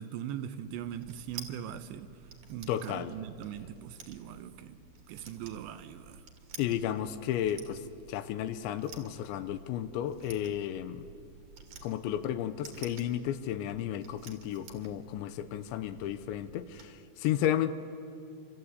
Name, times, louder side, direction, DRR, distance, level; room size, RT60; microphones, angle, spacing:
voice 1, 0.0-2.1 2.5-4.8 5.1-6.2, right 10 dB, 80° right, 10 dB, 2.9 m, -40 dB
sound 1, 0.6-16.9, right 5 dB, 50° right, 2.9 m, -51 dB
voice 2, 2.7-3.1 6.6-7.8 8.1-11.1 11.8-17.7, left 11 dB, 80° left, 11 dB, 3.0 m, -33 dB
27.0 x 25.5 x 8.2 m, 2.5 s
omnidirectional pair, 5.4 m